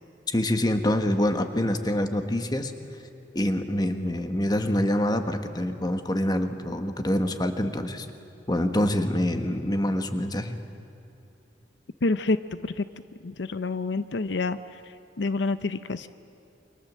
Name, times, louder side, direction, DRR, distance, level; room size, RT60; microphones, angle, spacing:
voice 1, 0.3-2.7 3.3-8.1 8.5-10.6, left 1 dB, 25° left, 7 dB, 1.5 m, -26 dB
voice 2, 12.0-12.4 12.6-12.8 13.2-14.6 15.2-16.1, left 3 dB, 80° left, 12 dB, 0.7 m, -27 dB
29.0 x 24.5 x 7.6 m, 2.8 s
head